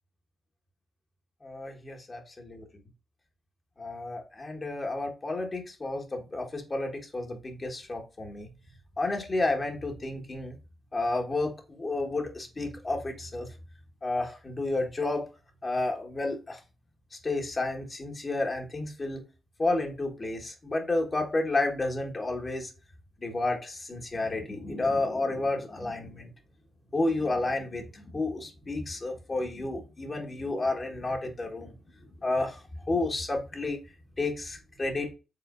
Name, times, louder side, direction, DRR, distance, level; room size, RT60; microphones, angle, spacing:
voice 1, 1.4-2.5 3.8-8.5 9.0-10.5 10.9-13.5 14.0-15.3 15.6-16.6 17.1-19.2 19.6-22.7 23.2-26.3 26.9-31.7 32.2-33.8 34.2-35.1, left 2 dB, 40° left, 1.4 m, -31 dB
5.0 x 3.7 x 2.5 m
supercardioid pair, 50°, 0 cm